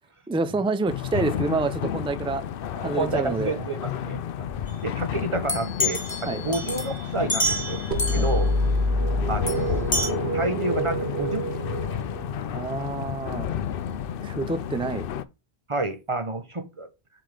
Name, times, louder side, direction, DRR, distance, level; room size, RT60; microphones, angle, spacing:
voice 1, 0.3-2.4 2.8-3.6 6.3-6.4 8.1-8.3 12.5-13.5 14.2-15.1, right 3 dB, 5° right, 0.4 m, -27 dB
sound 1, 0.9-15.2, left 9 dB, 70° left, 0.7 m, -31 dB
voice 2, 2.8-4.2 4.8-7.8 8.1-8.5 9.3-9.8 10.3-11.7 15.7-16.9, right 2 dB, 30° right, 0.9 m, -29 dB
sound 2, 5.5-8.4 9.5-9.6 9.9-10.1, left 1 dB, 25° left, 1.4 m, -28 dB
sound 3, 7.9-12.6, equal, 85° right, 1.2 m, -27 dB
7.6 x 4.9 x 3.3 m
omnidirectional pair, 1.0 m